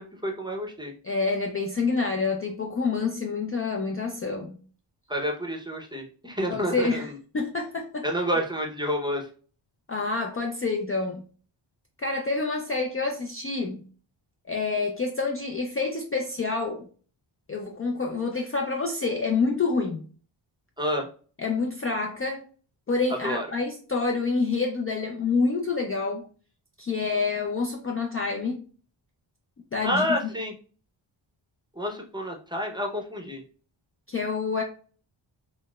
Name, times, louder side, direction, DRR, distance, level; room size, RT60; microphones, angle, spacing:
voice 1, 0.0-0.9 5.1-7.2 8.0-9.3 20.8-21.1 23.2-23.5 29.8-30.5 31.8-33.4, equal, 10° right, 0.6 m, -29 dB
voice 2, 1.0-4.6 6.5-7.1 7.3-8.1 9.9-11.2 12.0-13.8 14.5-16.9 17.5-20.1 21.4-22.4 22.9-26.2 26.8-28.6 29.7-30.1 34.1-34.6, left 4 dB, 30° left, 0.4 m, -27 dB
4.0 x 2.0 x 2.2 m
cardioid pair, 75°, 49 cm